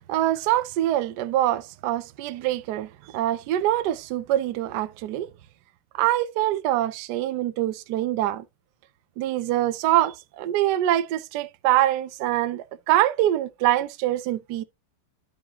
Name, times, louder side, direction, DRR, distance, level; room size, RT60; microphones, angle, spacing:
voice 1, 0.1-5.3 6.0-8.4 9.2-14.6, right 13 dB, 90° right, 0.9 m, -24 dB
12.0 x 4.7 x 2.8 m
omnidirectional pair, 2.4 m